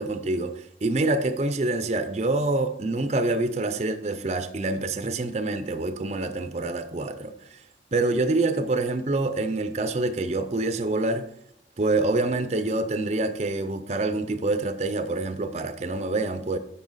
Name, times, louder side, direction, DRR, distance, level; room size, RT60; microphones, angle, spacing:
voice 1, 0.0-7.6 7.9-11.3 11.8-16.6, right 2 dB, 35° right, 0.5 m, -26 dB
8.5 x 5.6 x 4.0 m
head